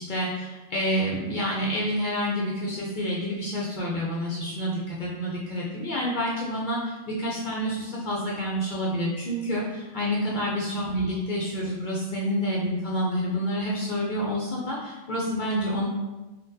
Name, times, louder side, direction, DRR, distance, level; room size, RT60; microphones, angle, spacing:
voice 1, 0.0-15.9, equal, 55° left, -4 dB, 0.5 m, -28 dB
3.7 x 2.2 x 2.6 m, 1.1 s
omnidirectional pair, 1.2 m